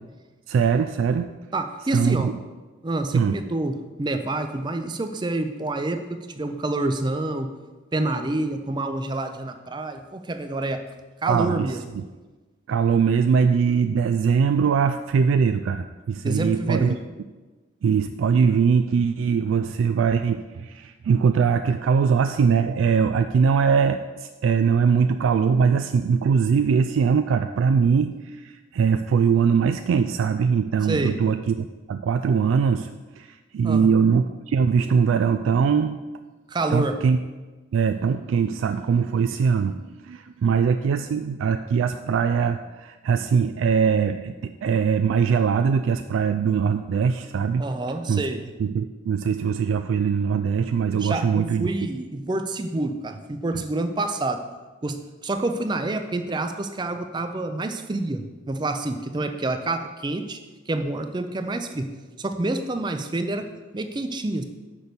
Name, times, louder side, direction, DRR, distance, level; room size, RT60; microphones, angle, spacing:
voice 1, 0.5-1.3 1.9-2.4 3.1-3.4 11.3-11.7 11.9-12.0 12.7-16.9 17.8-36.0 36.7-37.2 37.7-47.6 48.1-48.3 48.6-51.7, right 6 dB, 90° right, 8 dB, 0.3 m, -21 dB
voice 2, 1.5-2.3 2.8-7.5 7.9-10.8 11.2-11.8 16.2-17.0 30.9-31.2 33.6-33.9 36.5-37.0 47.6-48.5 51.0-54.4 54.8-60.4 60.7-64.4, right 2 dB, 25° right, 8 dB, 0.4 m, -28 dB
6.1 x 5.5 x 6.7 m, 1.3 s
head